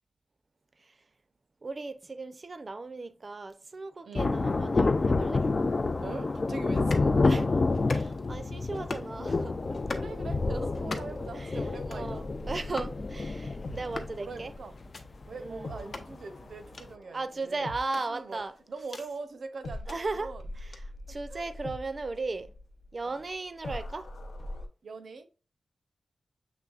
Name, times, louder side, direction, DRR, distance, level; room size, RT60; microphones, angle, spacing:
voice 1, 1.6-5.5 7.2-7.4 7.9-9.6 10.5-10.7 11.4-11.6 11.9-14.5 15.4-15.8 17.1-18.5 19.9-20.3 20.6-22.5 22.9-24.1, right 3 dB, 40° right, 0.5 m, -36 dB
Thunder, 4.2-16.2 16.4-16.5, left 3 dB, 40° left, 0.3 m, -29 dB
voice 2, 6.0-7.5 9.7-10.4 10.7-12.3 12.8-13.0 14.1-14.8 15.3-17.7 18.0-18.4 18.7-20.4 21.3-21.5 23.0-23.2 24.8-25.2, right 4 dB, 85° right, 0.7 m, -42 dB
sound 1, 6.7-7.1 7.7-8.3 8.7-9.1 9.7-10.1 10.7-11.3 11.7-12.1 12.7-13.0 13.7-14.2 14.7-15.0 15.8-16.1 16.7-16.9 17.8-19.1 19.7-20.0 20.7-20.8, left 3 dB, 60° left, 0.7 m, -40 dB
sound 2, 12.1-19.2 19.6-24.7, left 1 dB, 90° left, 0.8 m, -43 dB
7.0 x 3.2 x 2.4 m
wide cardioid pair, 120°, 0 cm